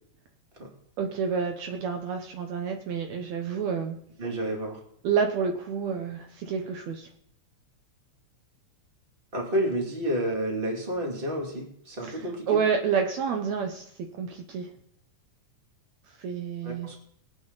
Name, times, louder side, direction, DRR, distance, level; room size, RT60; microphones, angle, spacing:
voice 1, 1.0-4.0 5.0-7.1 12.0-13.9 14.2-14.7 16.2-16.9, right 6 dB, 70° right, 4 dB, 2.1 m, -29 dB
voice 2, 4.2-4.8 9.3-12.6 16.6-17.0, right 1 dB, 20° right, 0 dB, 2.4 m, -30 dB
21.0 x 8.6 x 4.0 m, 0.67 s
omnidirectional pair, 3.5 m